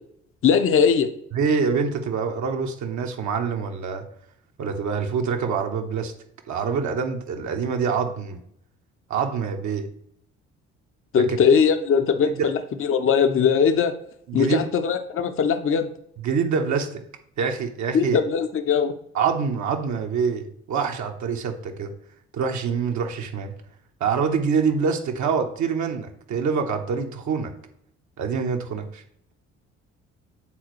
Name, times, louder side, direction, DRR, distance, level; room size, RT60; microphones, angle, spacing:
voice 1, 0.4-1.1 11.1-13.9 14.3-15.9 17.9-18.9, left 6 dB, 35° left, 9 dB, 0.7 m, -20 dB
voice 2, 1.3-4.0 4.6-6.1 6.5-8.4 9.1-9.9 11.2-11.4 12.4-12.5 14.3-14.6 16.2-17.0 17.4-18.2 19.1-21.9 22.3-23.5 24.0-27.5 28.2-29.0, right 6 dB, 55° right, 3 dB, 1.1 m, -25 dB
8.9 x 4.0 x 3.1 m, 0.69 s
hypercardioid pair, 50°, 35 cm